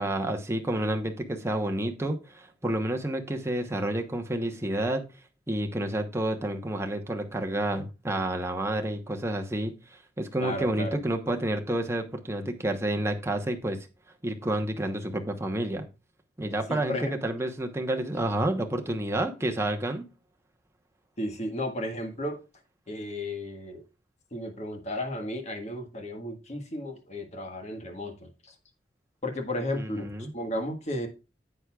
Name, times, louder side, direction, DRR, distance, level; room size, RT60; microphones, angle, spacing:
voice 1, 0.0-5.0 5.5-13.8 14.2-15.9 16.4-20.0 29.7-30.3, right 1 dB, 15° right, 4 dB, 1.1 m, -29 dB
voice 2, 10.4-11.0 16.7-17.1 21.2-22.4 22.9-23.8 24.3-28.5 29.2-31.1, left 1 dB, 40° left, 4 dB, 1.6 m, -34 dB
10.5 x 8.1 x 2.4 m, 0.30 s
head